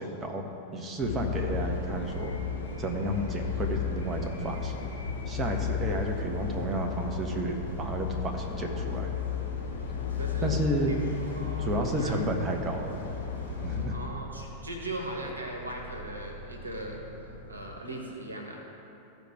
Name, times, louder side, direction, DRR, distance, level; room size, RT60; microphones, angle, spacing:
voice 1, 0.0-2.3 2.8-4.9 5.3-9.1 10.4-10.9 11.6-13.1 13.6-13.9, right 1 dB, 20° right, 2 dB, 1.3 m, -31 dB
sound 1, 1.0-13.8, left 7 dB, 65° left, 2.2 m, -34 dB
sound 2, 1.3-17.8, right 1 dB, 85° left, 0.9 m, -45 dB
voice 2, 10.2-12.2 13.7-17.0 17.5-18.6, right 1 dB, 80° right, 0 dB, 1.3 m, -39 dB
15.0 x 5.1 x 4.6 m, 2.9 s
figure-of-eight pair, 90°, 0 cm